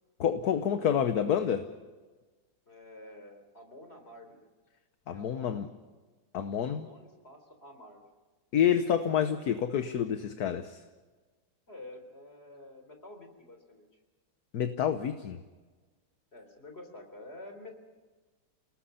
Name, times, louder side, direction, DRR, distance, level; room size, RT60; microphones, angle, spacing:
voice 1, 0.2-1.7 5.1-5.7 6.3-6.9 8.5-10.8 14.5-15.4, left 8 dB, 60° left, 8 dB, 1.4 m, -28 dB
voice 2, 2.7-4.4 5.1-5.6 6.7-8.0 11.7-13.9 16.3-17.7, left 1 dB, 30° left, 5 dB, 3.9 m, -49 dB
29.0 x 19.5 x 5.7 m, 1.3 s
omnidirectional pair, 2.1 m